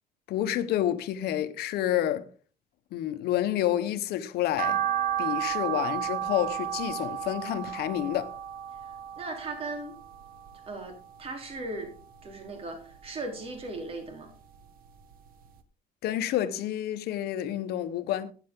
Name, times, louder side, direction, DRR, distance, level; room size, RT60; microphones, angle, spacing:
voice 1, 0.3-2.3 2.9-4.8 5.2-8.3 16.0-18.3, left 12 dB, 85° left, 1.0 m, -29 dB
sound 1, 4.6-10.9 11.3-12.4 12.8-14.2 14.5-14.6 15.1-15.2 15.5-15.6, right 10 dB, 65° right, 1.3 m, -33 dB
voice 2, 8.8-10.0 10.7-11.9 12.2-14.3, right 2 dB, 35° right, 3.4 m, -38 dB
13.5 x 9.2 x 3.7 m
cardioid pair, 155°, 16 cm